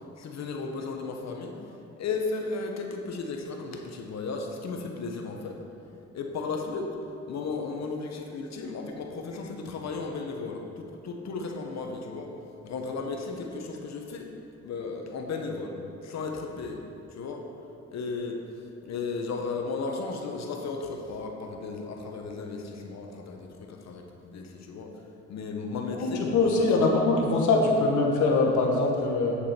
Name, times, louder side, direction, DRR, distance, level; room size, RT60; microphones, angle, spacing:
voice 1, 0.2-1.6 2.0-5.6 6.1-7.0 7.3-12.3 12.6-14.3 14.6-15.8 16.0-16.8 17.1-17.5 17.9-18.4 18.9-25.0 25.3-27.0, left 4 dB, 60° left, 2 dB, 1.1 m, -35 dB
voice 2, 26.2-29.4, left 3 dB, 75° left, -1 dB, 1.5 m, -23 dB
8.5 x 7.3 x 4.3 m, 2.7 s
cardioid pair, 90°, 30 cm